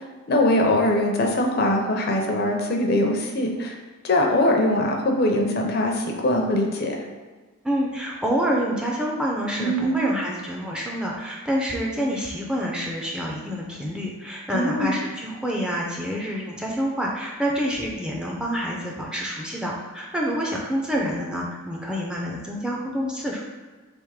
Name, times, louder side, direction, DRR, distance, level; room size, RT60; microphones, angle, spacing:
voice 1, 0.3-3.7 4.0-7.0 9.6-10.0 14.5-15.0, left 1 dB, 45° left, 1 dB, 0.6 m, -22 dB
voice 2, 7.6-23.4, equal, 5° right, -3 dB, 0.4 m, -27 dB
3.5 x 3.0 x 4.7 m, 1.4 s
head